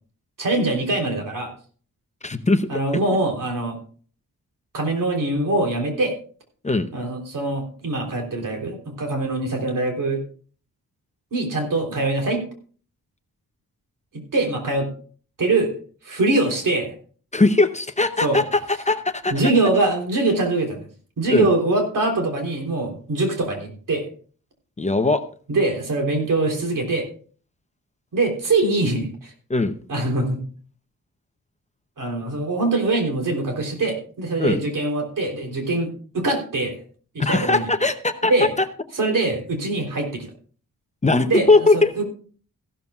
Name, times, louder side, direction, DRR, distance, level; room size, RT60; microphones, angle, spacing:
voice 1, 0.4-1.5 2.7-3.8 4.7-6.1 6.9-10.2 11.3-12.4 14.1-14.9 15.4-15.7 16.0-16.9 18.2-18.4 19.3-20.8 21.2-24.1 25.5-27.0 28.1-29.3 29.9-30.4 32.0-36.7 37.1-37.6 38.3-38.5 38.9-40.3 41.3-41.5 41.7-42.1, right 2 dB, 65° right, 2 dB, 3.6 m, -23 dB
voice 2, 2.2-2.7 6.6-6.9 17.3-19.3 21.3-21.5 24.8-25.2 29.5-29.8 34.4-34.6 37.2-38.3 41.0-41.9, left 3 dB, 20° left, 9 dB, 0.7 m, -19 dB
15.0 x 12.5 x 2.4 m, 0.43 s
wide cardioid pair, 165°, 35 cm